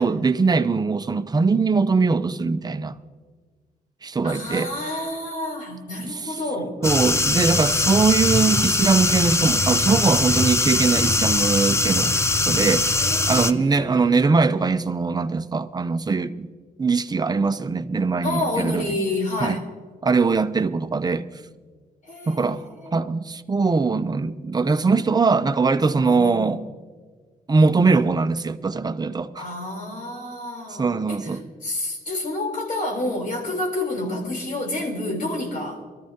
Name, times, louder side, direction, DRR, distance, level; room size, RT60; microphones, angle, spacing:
voice 1, 0.0-3.0 4.0-4.7 6.8-12.1 12.4-13.0 13.3-16.5 16.8-18.9 19.4-19.6 20.0-21.3 22.3-26.6 27.5-29.5 30.7-31.4, right 4 dB, 25° right, 0.6 m, -21 dB
voice 2, 4.2-6.8 13.0-14.1 18.2-19.6 22.0-23.1 26.0-26.5 29.4-35.8, left 1 dB, 60° left, 3.8 m, -29 dB
sound 1, 6.8-13.5, left 2 dB, 15° left, 0.6 m, -21 dB
23.0 x 13.5 x 2.9 m
cardioid pair, 90°, 16 cm